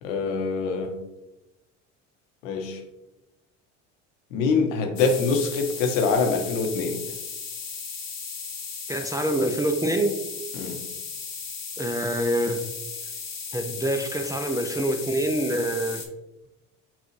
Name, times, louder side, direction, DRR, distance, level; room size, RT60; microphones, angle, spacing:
voice 1, 0.0-0.9 2.4-2.8 4.3-7.0 10.5-10.8, left 4 dB, 80° left, 4 dB, 0.8 m, -24 dB
sound 1, 5.0-16.1, left 5 dB, 45° left, 0.9 m, -36 dB
voice 2, 8.9-10.2 11.8-12.6 13.5-16.1, right 1 dB, 10° right, 5 dB, 0.4 m, -26 dB
5.6 x 2.3 x 3.0 m, 0.94 s
hypercardioid pair, 70°, 38 cm